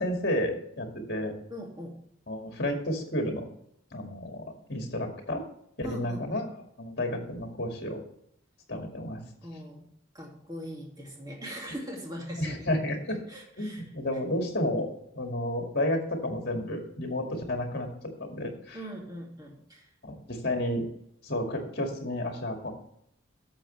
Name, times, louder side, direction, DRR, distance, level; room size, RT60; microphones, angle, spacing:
voice 1, 0.0-1.4 2.3-3.4 3.9-4.4 4.7-5.4 5.8-6.5 6.8-8.0 8.7-9.2 12.4-13.0 13.6-14.9 15.1-17.9 18.2-18.8 20.0-20.8 21.2-22.7, left 1 dB, 55° left, 3 dB, 2.2 m, -31 dB
voice 2, 1.5-2.0 5.8-6.4 9.4-9.9 10.1-12.8 13.1-13.8 18.7-19.9, equal, 20° right, -1 dB, 2.3 m, -41 dB
11.5 x 7.2 x 3.3 m, 0.72 s
head